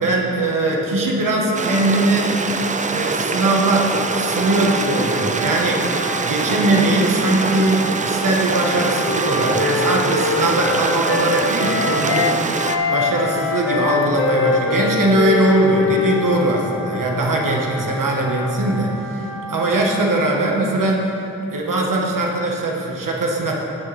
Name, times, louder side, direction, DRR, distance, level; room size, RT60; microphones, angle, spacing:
voice 1, 0.0-2.3 2.9-5.8 6.2-12.4 12.9-19.2 19.5-21.1 21.5-23.6, right 2 dB, 75° right, -1 dB, 1.5 m, -20 dB
Stream, 1.5-12.8, right 4 dB, 25° right, 0.4 m, -24 dB
Wind instrument woodwind instrument, 4.2-20.1, equal, 20° left, 1.9 m, -33 dB
Wind instrument woodwind instrument 2, 8.6-12.4 12.6-16.7, left 4 dB, 45° left, 0.7 m, -23 dB
16.5 x 6.5 x 3.4 m, 2.9 s
wide cardioid pair, 135°, 33 cm